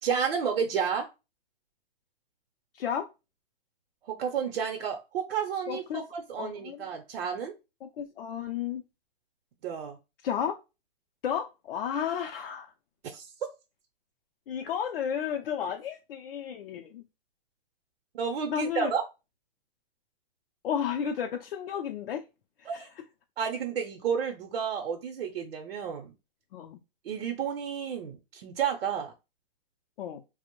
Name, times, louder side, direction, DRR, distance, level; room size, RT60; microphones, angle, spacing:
voice 1, 0.0-1.1 4.1-7.5 9.6-10.0 13.0-13.3 18.1-19.0 22.7-22.9 23.4-26.1 27.0-29.1, right 7 dB, 80° right, 0.6 m, -31 dB
voice 2, 2.7-3.1 5.7-6.0 6.4-6.8 7.8-8.8 10.2-10.5 11.2-12.7 14.5-17.0 18.5-18.9 20.6-22.2 22.6-22.8 26.5-26.8 30.0-30.2, left 8 dB, 70° left, 0.4 m, -32 dB
2.5 x 2.0 x 2.9 m
hypercardioid pair, 160°, 29 cm